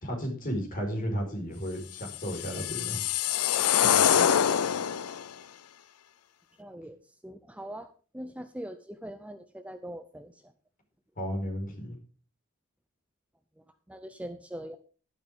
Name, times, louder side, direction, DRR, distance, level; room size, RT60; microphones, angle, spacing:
voice 1, 0.0-3.0 3.8-4.0 11.2-12.0, equal, 40° left, 2 dB, 5.0 m, -33 dB
sound 1, 2.1-5.3, left 9 dB, 85° left, 0.6 m, -25 dB
voice 2, 6.6-7.0 7.2-7.9 8.1-10.3 13.9-14.8, right 1 dB, 5° right, 9 dB, 0.6 m, -42 dB
12.0 x 12.0 x 3.7 m, 0.38 s
head